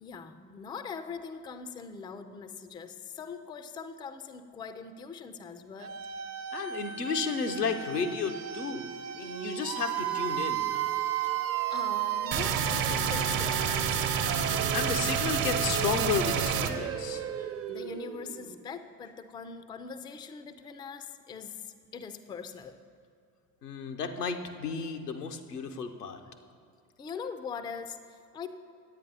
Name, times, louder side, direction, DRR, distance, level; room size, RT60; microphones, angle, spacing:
voice 1, 0.0-6.0 11.2-11.3 11.7-14.2 17.7-22.8 27.0-28.5, left 5 dB, 10° left, 10 dB, 0.3 m, -42 dB
sound 1, 5.8-18.6, right 9 dB, 30° right, 0.6 m, -34 dB
voice 2, 6.5-10.7 14.7-17.2 23.6-26.2, left 5 dB, 85° left, 5 dB, 0.7 m, -33 dB
sound 2, 12.3-16.7, right 7 dB, 50° right, 0.9 m, -29 dB
9.6 x 8.5 x 5.4 m, 2.4 s
figure-of-eight pair, 60°, 46 cm